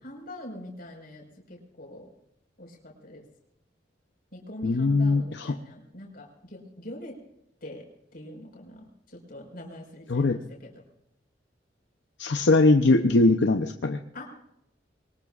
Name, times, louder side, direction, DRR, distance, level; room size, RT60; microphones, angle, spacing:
voice 1, 0.0-2.1 2.6-3.3 4.3-7.2 7.6-7.8 8.1-10.7 14.1-14.3, left 1 dB, 55° left, 0 dB, 4.9 m, -43 dB
voice 2, 4.6-5.6 10.1-10.4 12.2-14.0, left 2 dB, 80° left, 6 dB, 0.7 m, -21 dB
23.5 x 19.5 x 2.5 m, 0.76 s
head